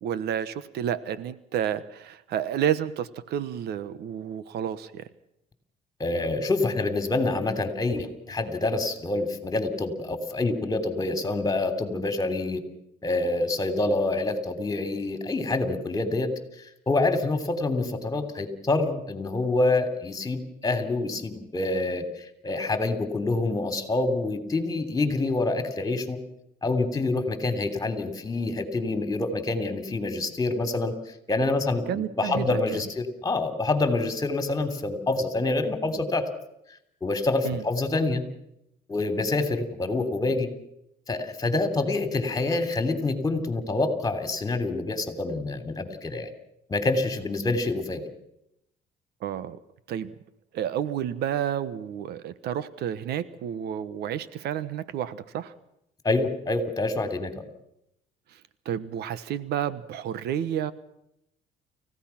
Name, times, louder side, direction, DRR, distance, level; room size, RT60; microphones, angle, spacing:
voice 1, 0.0-5.1 31.9-32.6 37.4-37.6 49.2-49.6 49.9-50.1 50.5-55.5 58.3-58.4 58.6-60.7, right 10 dB, 75° right, 16 dB, 1.2 m, -30 dB
voice 2, 6.0-12.6 13.0-16.3 16.9-26.2 26.6-30.9 31.3-36.3 37.0-38.2 38.9-40.5 41.1-46.3 46.7-48.0 56.0-57.3, left 2 dB, 20° left, 9 dB, 3.3 m, -26 dB
29.5 x 16.0 x 5.9 m, 0.80 s
cardioid pair, 110°, 17 cm